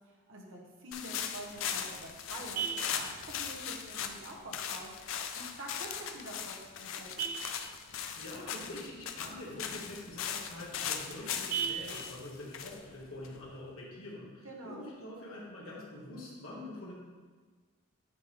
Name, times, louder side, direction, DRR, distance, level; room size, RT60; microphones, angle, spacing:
voice 1, 0.3-2.7 2.9-7.1 14.4-14.9, right 1 dB, 65° right, -1 dB, 1.1 m, -46 dB
sound 1, 0.9-13.7, left 8 dB, 70° left, 0.4 m, -39 dB
Vehicle horn car horn honking, 1.3-14.3, right 7 dB, 90° right, 0.7 m, -44 dB
voice 2, 7.9-16.9, left 1 dB, 85° left, -5 dB, 1.5 m, -45 dB
9.3 x 3.2 x 3.6 m, 1.4 s
head